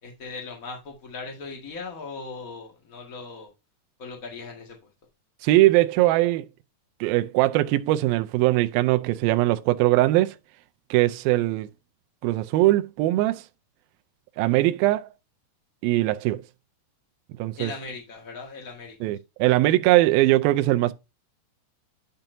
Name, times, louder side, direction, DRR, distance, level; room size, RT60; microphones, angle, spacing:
voice 1, 0.0-3.5 4.0-4.8 17.6-18.9, left 4 dB, 55° left, 0.9 m, -38 dB
voice 2, 5.4-6.5 7.0-10.4 10.9-11.7 12.2-13.4 14.4-15.1 15.8-16.4 17.4-17.7 19.0-20.9, right 17 dB, 80° right, 2.2 m, -21 dB
10.5 x 5.6 x 2.6 m
omnidirectional pair, 4.7 m